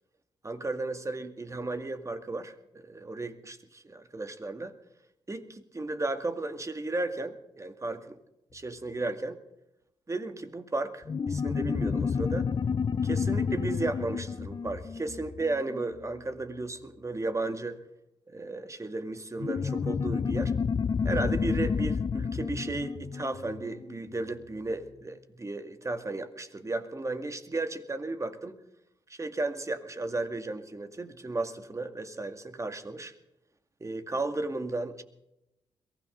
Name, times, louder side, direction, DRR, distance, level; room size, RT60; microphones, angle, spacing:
voice 1, 0.4-4.7 5.3-8.2 8.5-9.4 10.1-12.5 13.0-17.8 18.3-20.5 21.0-28.6 29.1-33.1 33.8-35.0, right 2 dB, 30° right, 7 dB, 2.2 m, -34 dB
sound 1, 11.1-16.0 19.4-24.3, left 6 dB, 45° left, 0.7 m, -30 dB
22.5 x 16.0 x 4.0 m, 0.87 s
supercardioid pair, 55°, 10 cm